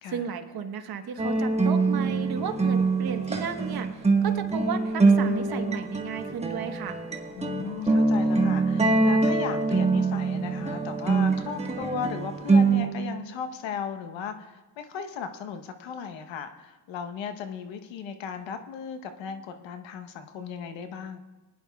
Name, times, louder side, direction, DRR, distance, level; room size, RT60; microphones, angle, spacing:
voice 1, 0.1-7.0, right 7 dB, 55° right, 6 dB, 1.2 m, -34 dB
sound 1, 1.2-12.9, right 3 dB, 15° right, 1.2 m, -24 dB
voice 2, 7.4-21.2, left 6 dB, 85° left, 8 dB, 1.0 m, -36 dB
19.5 x 10.5 x 2.3 m, 1.2 s
cardioid pair, 85°, 44 cm